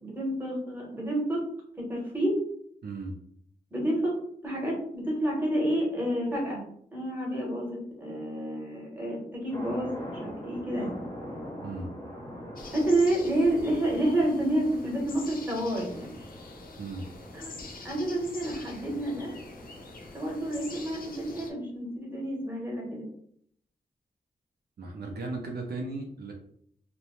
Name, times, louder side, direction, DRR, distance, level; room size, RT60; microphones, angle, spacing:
voice 1, 0.0-1.4 1.9-2.4 3.7-4.1 4.4-6.6 6.9-9.9 10.2-11.0 12.7-16.1 17.3-17.5 17.8-19.3 20.1-23.1, right 1 dB, 10° right, -4 dB, 0.9 m, -29 dB
voice 2, 2.8-3.1 11.6-11.9 16.8-17.1 24.8-26.3, right 3 dB, 75° right, 0 dB, 0.6 m, -36 dB
sound 1, 9.5-21.1, equal, 15° left, 0.7 m, -43 dB
sound 2, 12.6-21.5, left 3 dB, 60° left, 0.5 m, -46 dB
2.6 x 2.1 x 3.0 m, 0.66 s
wide cardioid pair, 120°, 17 cm